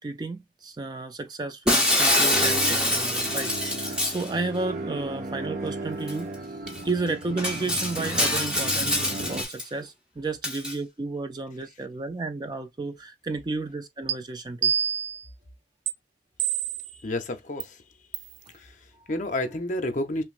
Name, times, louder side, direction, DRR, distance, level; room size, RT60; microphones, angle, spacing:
voice 1, 0.0-6.6 6.8-14.7 19.0-19.1, right 3 dB, 25° right, 0.3 m, -32 dB
Shatter, 1.7-4.3 6.1-6.2 6.7-6.8 7.4-9.6 10.4-10.7, left 1 dB, 5° right, 0.9 m, -25 dB
sound 1, 2.3-9.4, right 1 dB, 45° right, 0.7 m, -35 dB
sound 2, 14.1-14.2 14.6-15.2 15.9-16.0 16.4-16.9 17.6-17.7 18.1-18.3, right 9 dB, 90° right, 0.5 m, -26 dB
voice 2, 16.9-17.8 18.5-20.2, left 1 dB, 45° left, 0.6 m, -31 dB
5.8 x 2.0 x 2.4 m
head